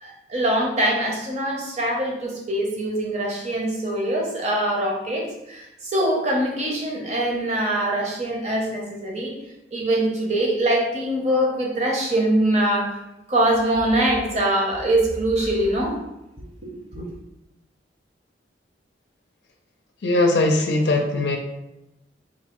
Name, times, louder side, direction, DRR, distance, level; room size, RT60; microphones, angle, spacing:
voice 1, 0.0-9.4 9.7-13.0 13.3-16.0 16.6-17.0, right 1 dB, 40° right, -1 dB, 0.8 m, -23 dB
voice 2, 20.0-21.4, left 2 dB, 75° left, 2 dB, 0.5 m, -20 dB
4.0 x 2.6 x 3.0 m, 0.91 s
head